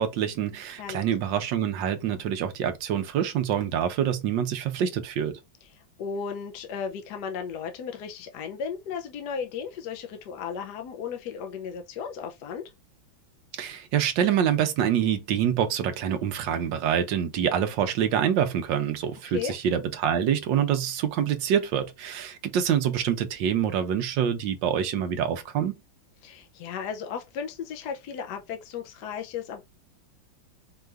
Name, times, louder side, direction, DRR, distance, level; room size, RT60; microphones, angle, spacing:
voice 1, 0.0-5.3 13.6-25.7, right 9 dB, 70° right, 1.4 m, -26 dB
voice 2, 5.7-12.6 19.2-19.5 26.2-29.6, left 7 dB, 65° left, 1.1 m, -35 dB
4.7 x 2.5 x 3.3 m
omnidirectional pair, 2.1 m